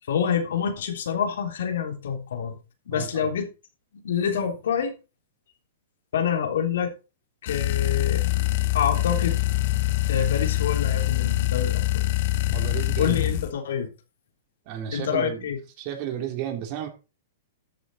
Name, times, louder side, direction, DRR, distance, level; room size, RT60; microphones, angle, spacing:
voice 1, 0.1-2.6 2.8-3.5 4.0-4.9 6.1-6.9 7.4-8.2 8.7-9.4 10.1-12.1 13.0-13.9 14.9-15.6, left 7 dB, 75° left, 3.3 m, -27 dB
voice 2, 2.9-3.3 12.5-13.4 14.6-15.5 15.8-16.9, right 10 dB, 45° right, 3.1 m, -33 dB
sound 1, 7.5-13.5, left 16 dB, 55° left, 1.0 m, -24 dB
13.5 x 7.2 x 4.1 m
hypercardioid pair, 130°, 0 cm